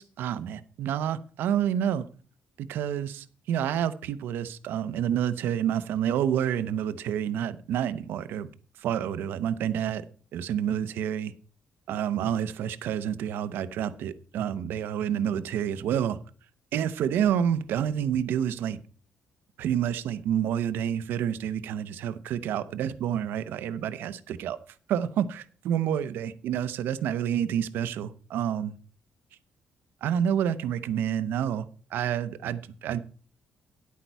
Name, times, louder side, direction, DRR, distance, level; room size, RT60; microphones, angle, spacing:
voice 1, 0.0-2.0 2.6-8.5 8.8-10.0 10.3-11.3 11.9-16.2 16.7-18.8 19.6-24.6 24.9-28.7 30.0-31.6 31.9-33.0, right 9 dB, 80° right, 0.8 m, -28 dB
10.5 x 8.4 x 4.6 m
cardioid pair, 160°, 3 cm